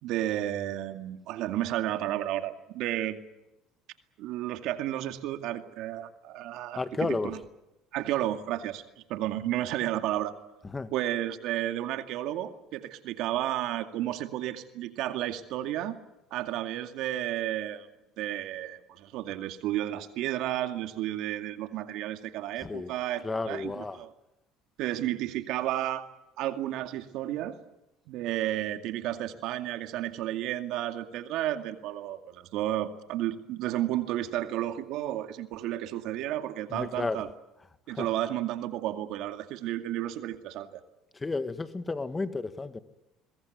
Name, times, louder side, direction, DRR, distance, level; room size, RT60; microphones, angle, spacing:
voice 1, 0.0-3.2 4.2-7.4 7.9-8.8 9.1-10.3 10.9-16.0 16.3-17.9 18.2-24.1 24.8-26.1 26.4-27.6 28.1-37.3 37.9-40.8, right 13 dB, 70° right, 7 dB, 2.2 m, -32 dB
voice 2, 6.7-7.3 10.6-10.9 22.6-22.9 23.2-24.0 36.7-37.2 37.9-38.1 41.1-42.8, left 3 dB, 20° left, 10 dB, 1.9 m, -32 dB
22.5 x 21.5 x 9.5 m, 0.92 s
supercardioid pair, 80°, 0 cm